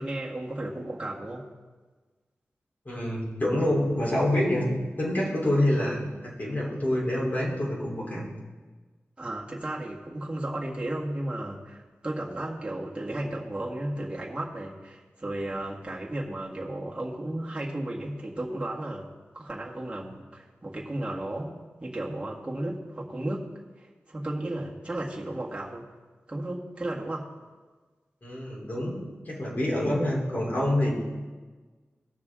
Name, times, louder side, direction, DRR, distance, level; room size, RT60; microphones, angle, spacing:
voice 1, 0.0-1.5 9.2-19.1 19.3-23.5 23.8-25.9 26.3-27.3, right 1 dB, 20° right, -4 dB, 1.8 m, -34 dB
voice 2, 2.9-4.7 5.0-8.2 28.2-29.0 29.3-31.0, left 1 dB, 40° left, -5 dB, 3.7 m, -26 dB
18.5 x 6.5 x 3.7 m, 1.3 s
wide cardioid pair, 105°, 5 cm